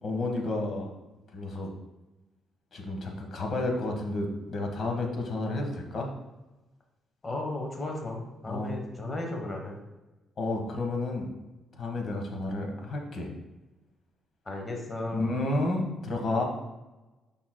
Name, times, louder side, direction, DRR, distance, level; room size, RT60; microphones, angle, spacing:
voice 1, 0.0-0.9 1.3-1.7 2.7-6.1 8.5-8.7 10.4-11.3 11.8-13.3 15.1-16.4, left 2 dB, 50° left, 2 dB, 1.5 m, -31 dB
voice 2, 7.2-9.8 14.4-15.3, left 2 dB, 30° left, 1 dB, 1.2 m, -35 dB
8.6 x 5.6 x 2.3 m, 1.1 s
cardioid pair, 90°, 0 cm